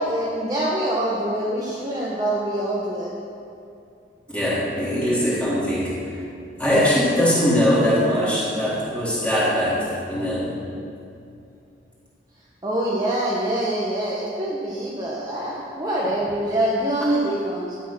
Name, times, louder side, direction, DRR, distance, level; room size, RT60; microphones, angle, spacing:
voice 1, 0.0-3.2 12.6-17.8, right 1 dB, 20° right, -6 dB, 1.3 m, -25 dB
voice 2, 4.3-6.2 6.6-10.6, equal, 5° left, -8 dB, 3.5 m, -21 dB
13.0 x 9.2 x 6.2 m, 2.5 s
head